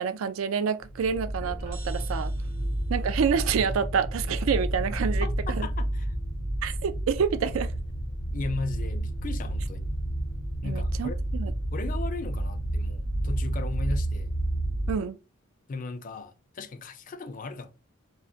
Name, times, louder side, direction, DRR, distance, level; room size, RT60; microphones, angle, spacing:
voice 1, 0.0-2.3 2.9-5.7 6.6-7.7 10.6-11.5 14.9-15.2, right 6 dB, 85° right, 0.4 m, -28 dB
sound 1, 0.8-14.9, right 1 dB, 90° left, 0.9 m, -30 dB
sound 2, 1.4-3.1, right 2 dB, 45° right, 0.8 m, -49 dB
voice 2, 5.2-6.1 8.3-9.9 10.6-11.2 11.7-14.3 15.7-17.7, left 3 dB, 40° left, 0.4 m, -37 dB
3.5 x 2.1 x 2.6 m
head